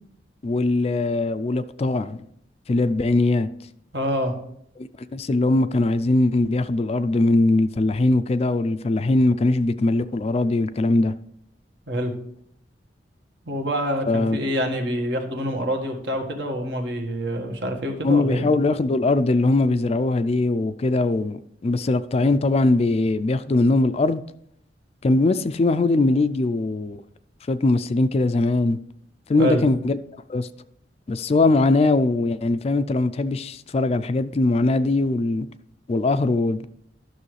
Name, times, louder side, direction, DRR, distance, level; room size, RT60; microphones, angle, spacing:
voice 1, 0.4-2.2 2.7-3.5 4.8-11.1 14.1-14.4 18.0-24.2 25.0-27.0 27.5-28.8 29.3-30.0 30.3-30.5 31.1-35.5 35.9-36.7, left 2 dB, 35° left, 0.4 m, -21 dB
voice 2, 3.9-4.3 11.9-12.1 13.5-18.5 29.4-29.6, equal, 70° right, 1.5 m, -26 dB
12.5 x 6.3 x 3.2 m
head